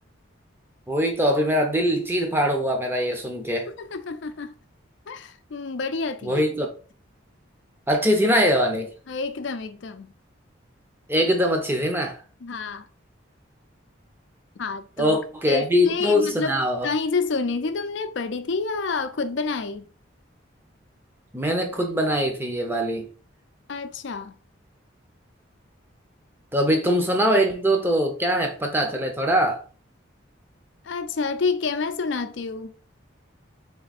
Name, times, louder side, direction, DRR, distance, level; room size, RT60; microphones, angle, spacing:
voice 1, 0.9-3.7 6.2-6.7 7.9-8.9 11.1-12.2 15.0-16.9 21.3-23.1 26.5-29.6, equal, 10° right, 0.7 m, -22 dB
voice 2, 3.8-4.5 5.1-6.4 9.1-10.1 12.4-12.9 14.6-15.2 15.5-19.9 23.7-24.3 30.8-32.7, left 4 dB, 65° left, 0.5 m, -28 dB
3.6 x 3.4 x 4.0 m
head